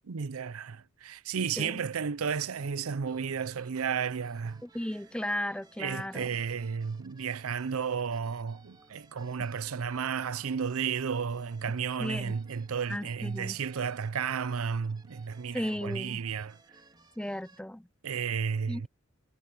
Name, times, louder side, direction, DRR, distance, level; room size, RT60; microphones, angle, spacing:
voice 1, 0.1-4.6 5.8-16.6 18.0-18.9, right 6 dB, 85° right, 0.6 m, -33 dB
sound 1, 3.0-17.6, right 3 dB, 20° right, 3.9 m, -60 dB
voice 2, 4.6-6.3 12.0-12.3 12.9-13.6 15.5-16.2 17.2-17.9 18.7-18.9, left 1 dB, 5° left, 0.7 m, -35 dB
head